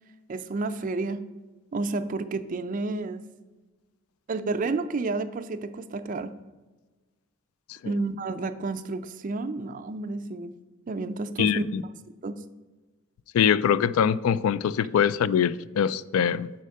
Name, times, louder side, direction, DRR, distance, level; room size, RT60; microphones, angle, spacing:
voice 1, 0.3-1.3 1.7-3.2 4.3-6.3 7.8-10.6 10.9-11.6 12.2-12.3, right 3 dB, 40° right, 0.4 m, -30 dB
voice 2, 11.4-11.8 13.3-16.5, left 8 dB, 85° left, 0.3 m, -23 dB
6.4 x 4.3 x 6.4 m
head